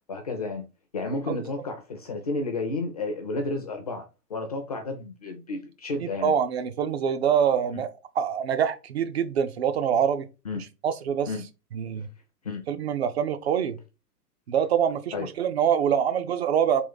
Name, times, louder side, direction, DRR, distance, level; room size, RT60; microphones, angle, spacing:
voice 1, 0.1-0.7 0.9-4.0 4.3-6.3 7.7-7.8 10.5-10.6 11.3-11.4 12.4-12.6 15.1-15.3, left 2 dB, 25° left, 0.4 m, -31 dB
voice 2, 6.0-10.3 10.8-11.3 11.7-12.1 12.7-13.8 14.5-16.8, right 8 dB, 45° right, 0.5 m, -25 dB
3.8 x 2.5 x 3.8 m
hypercardioid pair, 125°, 48 cm